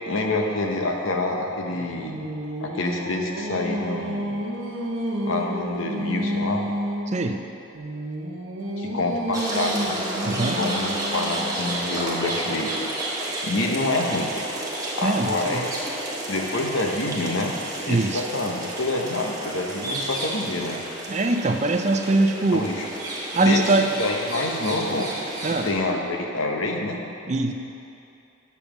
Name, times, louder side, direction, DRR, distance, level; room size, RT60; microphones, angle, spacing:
voice 1, 0.1-2.2 2.6-4.3 5.3-6.6 8.8-10.0 10.6-12.7 13.4-14.3 15.0-15.9 16.3-17.5 17.9-20.8 22.5-22.9 23.4-23.6 24.0-25.1 25.4-27.0, left 2 dB, 85° left, 1 dB, 1.0 m, -27 dB
Singing, 1.7-7.1 7.7-11.6, equal, 75° right, 1.1 m, -30 dB
voice 2, 7.1-7.4 10.2-10.6 15.0-15.7 17.9-18.2 21.1-22.7 23.3-23.9 25.4-25.7 27.3-27.5, right 2 dB, 35° right, 5 dB, 0.5 m, -22 dB
sound 1, 9.3-25.7, right 1 dB, 20° right, 1.2 m, -31 dB
7.1 x 6.9 x 6.0 m, 2.7 s
head